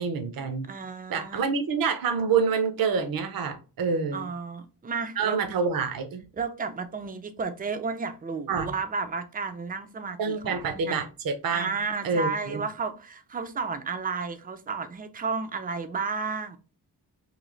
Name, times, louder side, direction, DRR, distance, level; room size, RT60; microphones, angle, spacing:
voice 1, 0.0-0.7 1.1-4.2 5.2-6.2 8.5-8.7 10.2-11.7 12.0-12.6, right 5 dB, 55° right, 0.7 m, -27 dB
voice 2, 0.6-1.4 4.1-5.4 6.3-11.0 11.5-16.6, right 4 dB, 20° right, 0.4 m, -32 dB
3.1 x 2.8 x 3.8 m
wide cardioid pair, 140°, 41 cm